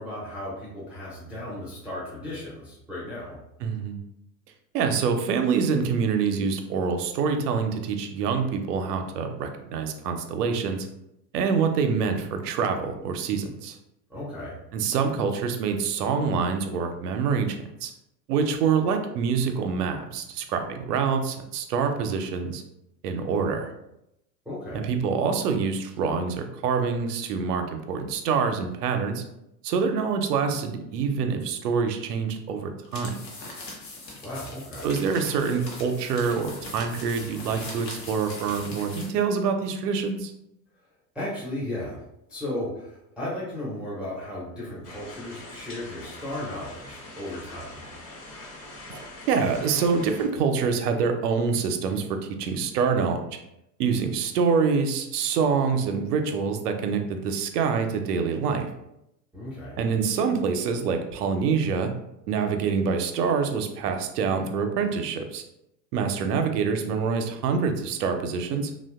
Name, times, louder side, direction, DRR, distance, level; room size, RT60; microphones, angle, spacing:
voice 1, 0.0-3.4 14.1-14.6 24.5-24.9 34.2-34.9 41.1-42.0 42.3-47.8 59.3-59.8, left 1 dB, 5° right, -8 dB, 0.4 m, -35 dB
voice 2, 3.6-4.0 4.7-10.9 11.3-13.8 14.7-17.9 18.3-22.6 23.0-23.7 24.7-29.2 29.6-33.2 34.8-40.3 48.9-49.0 49.3-53.2 53.8-58.7 59.8-61.9 62.3-65.4 65.9-68.7, right 5 dB, 70° right, 6 dB, 0.5 m, -26 dB
sound 1, 32.8-39.2, left 2 dB, 75° left, 0.9 m, -41 dB
sound 2, 44.8-50.3, left 2 dB, 50° left, 1.1 m, -43 dB
2.7 x 2.2 x 2.2 m, 0.83 s
figure-of-eight pair, 80°, 50 cm